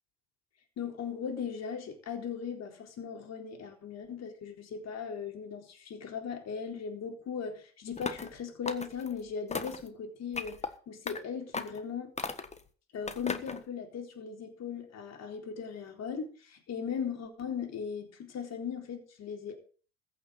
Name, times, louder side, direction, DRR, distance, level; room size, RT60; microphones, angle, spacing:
voice 1, 0.8-12.1 12.9-19.6, left 6 dB, 50° left, 4.1 m, -38 dB
sound 1, 8.0-8.3 8.7-9.1 9.5-9.9 10.3-10.7 11.1-11.2 11.5-11.8 12.2-12.6 13.1-13.6, left 4 dB, 20° left, 1.5 m, -36 dB
15.0 x 6.8 x 8.1 m
hypercardioid pair, 65°, 34 cm